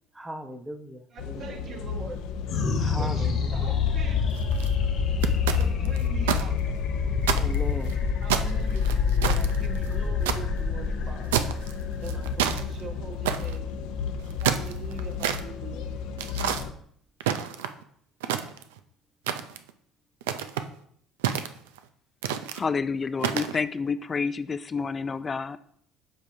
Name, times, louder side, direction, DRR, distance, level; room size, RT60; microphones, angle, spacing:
voice 1, 0.1-1.8 2.8-3.7 7.4-8.0, right 1 dB, 15° right, 0.9 m, -38 dB
voice 2, 1.1-2.2 2.9-4.2 5.6-6.6 8.2-8.9 9.2-11.5 12.0-13.8 14.4-16.0, right 5 dB, 55° right, 1.3 m, -42 dB
sound 1, 1.2-16.7, left 5 dB, 75° left, 0.6 m, -34 dB
sound 2, 2.5-13.1, left 6 dB, 55° left, 1.3 m, -27 dB
sound 3, 4.3-4.7 5.2-6.4 6.8-6.9 7.2-7.9 8.3-10.4 11.3-11.7 12.0-12.6 13.2-13.6 14.2-15.4 16.2-16.6 17.2-17.8 18.2-18.8 19.3-19.7 20.2-20.7 21.2-21.8 22.2-22.6 23.2-23.6, right 9 dB, 85° right, 0.4 m, -28 dB
voice 3, 22.5-25.6, left 5 dB, 35° left, 0.3 m, -29 dB
8.0 x 5.3 x 2.7 m
hypercardioid pair, 70°, 0 cm